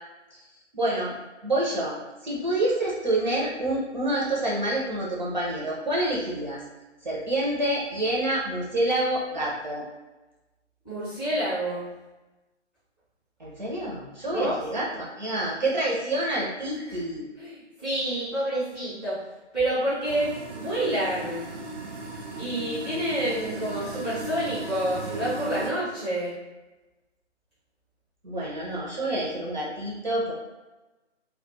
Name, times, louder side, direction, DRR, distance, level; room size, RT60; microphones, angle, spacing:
voice 1, 0.7-1.1 1.4-2.0 2.2-6.6 7.0-9.8 13.4-17.2 28.2-30.3, right 1 dB, 40° right, -4 dB, 0.5 m, -27 dB
voice 2, 10.8-11.9 14.3-14.5 16.9-17.0 17.4-19.2 19.5-21.5 22.4-26.4, right 1 dB, 5° left, -14 dB, 0.6 m, -28 dB
sound 1, 20.0-25.7, right 2 dB, 80° right, 0.6 m, -36 dB
2.2 x 2.1 x 3.0 m, 1.1 s
figure-of-eight pair, 140°, 36 cm